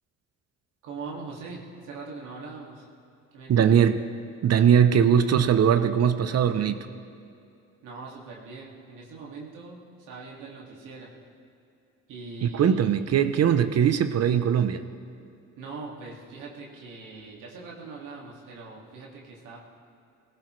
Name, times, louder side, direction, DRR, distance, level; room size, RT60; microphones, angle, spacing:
voice 1, 0.8-2.9 3.3-3.9 7.8-11.1 12.1-12.8 15.6-19.6, right 4 dB, 90° right, -3 dB, 2.3 m, -41 dB
voice 2, 3.5-4.0 4.4-6.8 12.4-14.8, right 8 dB, 55° right, 10 dB, 0.8 m, -20 dB
19.0 x 17.0 x 3.3 m, 2.6 s
cardioid pair, 90°, 30 cm